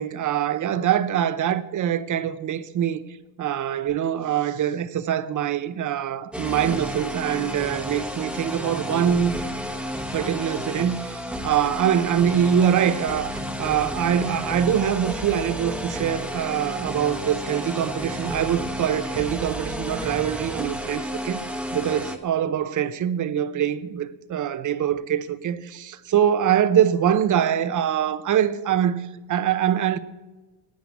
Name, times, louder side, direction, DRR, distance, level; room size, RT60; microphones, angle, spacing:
voice 1, 0.0-3.0 3.4-9.4 10.1-21.4 21.7-30.0, right 9 dB, 45° right, 0.8 m, -24 dB
sound 1, 6.3-22.2, equal, ahead, 1.0 m, -32 dB
10.5 x 9.3 x 8.3 m
cardioid pair, 150°, 43 cm